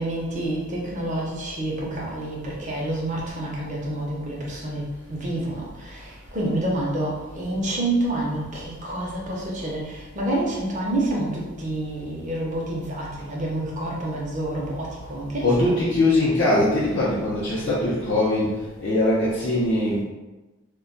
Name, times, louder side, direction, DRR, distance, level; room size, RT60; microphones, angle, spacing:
voice 1, 0.0-4.8 5.1-15.9, right 1 dB, 35° right, -3 dB, 0.6 m, -28 dB
voice 2, 15.4-20.0, left 1 dB, 55° left, -7 dB, 0.6 m, -21 dB
2.2 x 2.1 x 3.7 m, 1.1 s
head